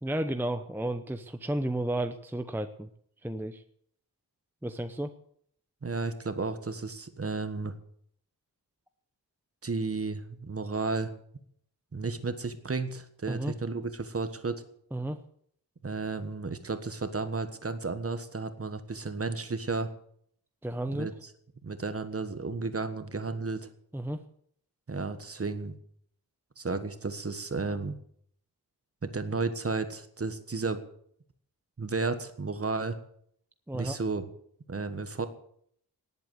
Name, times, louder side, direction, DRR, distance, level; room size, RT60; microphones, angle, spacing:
voice 1, 0.0-2.9 3.2-3.6 4.6-5.1 13.3-13.5 14.9-15.2 20.6-21.1 23.9-24.2 33.7-34.0, right 1 dB, 5° right, 8 dB, 0.7 m, -32 dB
voice 2, 5.8-7.7 9.6-11.1 11.9-14.6 15.8-19.9 20.9-21.3 21.6-23.7 24.9-25.7 26.6-28.0 29.0-30.8 31.8-33.0 33.7-34.3 34.7-35.3, right 3 dB, 35° right, 10 dB, 1.5 m, -33 dB
18.5 x 8.3 x 8.1 m, 0.65 s
wide cardioid pair, 145°, 40 cm